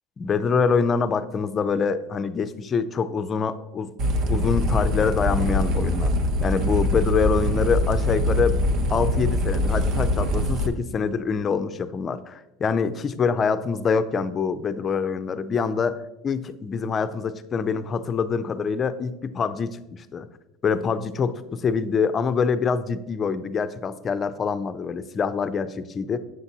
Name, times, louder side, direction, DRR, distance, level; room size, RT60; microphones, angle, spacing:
voice 1, 0.2-3.9 4.3-6.1 6.4-8.6 8.9-20.3 20.6-26.2, left 5 dB, 30° left, 12 dB, 0.4 m, -25 dB
sound 1, 4.0-10.7, left 1 dB, 50° right, 0.6 m, -23 dB
7.5 x 5.8 x 2.7 m, 0.94 s
supercardioid pair, 120°, 0 cm